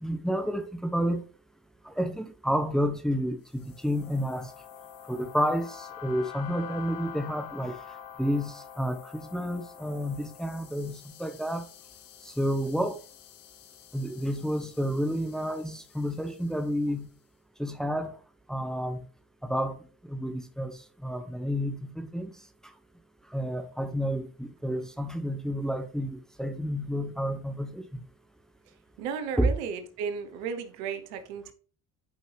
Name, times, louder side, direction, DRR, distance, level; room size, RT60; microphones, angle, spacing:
voice 1, 0.0-1.2 1.8-4.5 5.1-7.7 8.2-11.7 12.2-13.0 13.9-17.1 17.6-18.1 18.5-19.0 19.4-19.8 20.1-22.3 23.3-28.0 29.4-29.5, equal, ahead, 1.2 m, -30 dB
sound 1, 3.5-16.9, left 9 dB, 65° left, 1.2 m, -47 dB
voice 2, 29.0-31.5, right 6 dB, 85° right, 1.2 m, -34 dB
11.0 x 5.4 x 3.4 m
hypercardioid pair, 60°, 47 cm